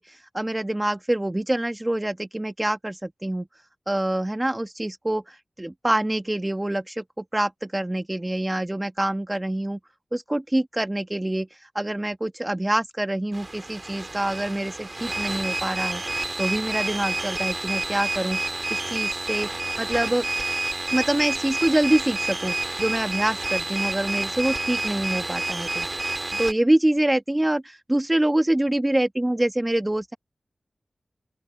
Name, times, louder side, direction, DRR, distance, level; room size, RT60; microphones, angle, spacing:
voice 1, 0.0-3.4 3.9-9.8 10.1-11.5 11.7-16.0 16.4-18.4 18.7-19.5 19.8-20.3 20.9-25.9 26.4-30.2, right 1 dB, 20° right, 1.4 m, -25 dB
sound 1, 13.3-26.5, right 2 dB, 35° right, 2.3 m, -29 dB
open air
wide cardioid pair, 60°, 0 cm